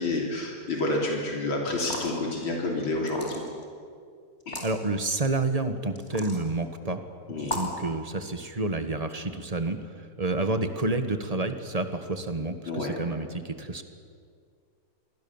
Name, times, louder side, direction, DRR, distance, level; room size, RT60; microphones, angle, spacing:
voice 1, 0.0-3.4 4.5-4.6 7.3-7.6 12.7-13.0, left 2 dB, 85° left, -1 dB, 4.0 m, -29 dB
sound 1, 1.7-2.2 3.0-3.6 4.4-4.7 6.0-6.4 7.4-7.8, left 1 dB, 35° left, 3.7 m, -35 dB
voice 2, 4.6-7.0 7.4-13.8, right 2 dB, 20° right, 8 dB, 1.4 m, -29 dB
28.0 x 22.5 x 7.3 m, 2.2 s
omnidirectional pair, 2.1 m